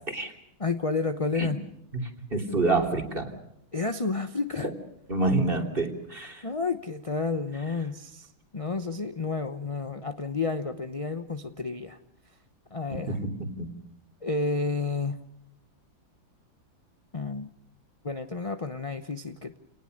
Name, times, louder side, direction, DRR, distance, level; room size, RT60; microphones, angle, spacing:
voice 1, 0.6-1.6 3.7-4.7 6.4-12.0 12.7-13.2 14.2-15.2 17.1-17.5 18.0-19.6, left 4 dB, 25° left, 8 dB, 0.7 m, -30 dB
voice 2, 2.3-3.3 4.6-4.7 5.1-6.4 12.9-13.3 13.6-13.7, right 2 dB, 25° right, 4 dB, 3.3 m, -27 dB
29.5 x 19.5 x 6.6 m, 0.78 s
omnidirectional pair, 2.1 m